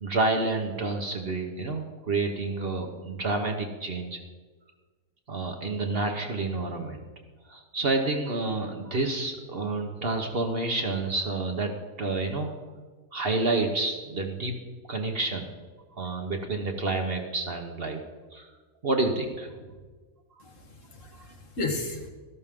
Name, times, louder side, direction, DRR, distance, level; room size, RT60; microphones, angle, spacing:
voice 1, 0.0-4.2 5.3-7.1 7.5-11.7 12.0-12.5 13.1-14.5 14.9-15.5 16.0-18.0 18.3-18.5 18.8-19.5, right 3 dB, 45° right, 3 dB, 1.1 m, -29 dB
voice 2, 20.4-22.1, left 2 dB, 60° left, 2 dB, 1.8 m, -34 dB
13.0 x 12.5 x 3.7 m, 1.4 s
omnidirectional pair, 1.5 m